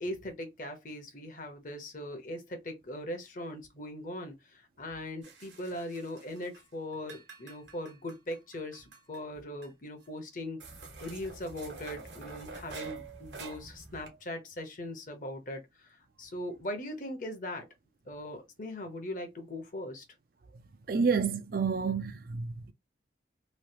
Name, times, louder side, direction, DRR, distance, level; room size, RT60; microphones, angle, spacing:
voice 1, 0.0-10.6 11.0-17.6 18.1-20.0, left 1 dB, 45° left, 0.9 m, -40 dB
sound 1, 5.2-6.7 6.9-9.2 9.6-9.7 10.0-10.1 10.6-14.1, right 4 dB, 75° right, 1.1 m, -47 dB
voice 2, 20.9-22.7, right 5 dB, 50° right, 0.4 m, -29 dB
3.1 x 2.4 x 2.8 m
head